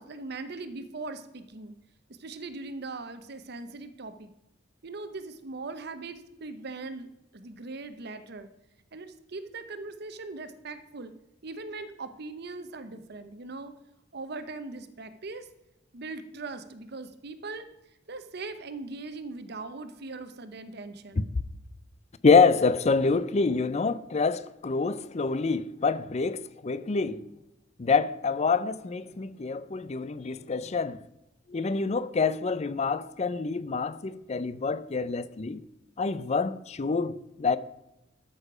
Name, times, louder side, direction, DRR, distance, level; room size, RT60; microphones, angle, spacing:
voice 1, 0.0-1.7 2.2-4.3 4.8-7.1 7.3-8.5 8.9-11.1 11.4-13.7 14.1-15.5 15.9-17.7 18.1-21.3, right 3 dB, 60° right, 0.8 m, -40 dB
voice 2, 22.2-27.2 27.8-31.0 31.5-35.6 36.0-37.6, left 4 dB, 35° left, 0.5 m, -26 dB
13.0 x 6.5 x 4.9 m
head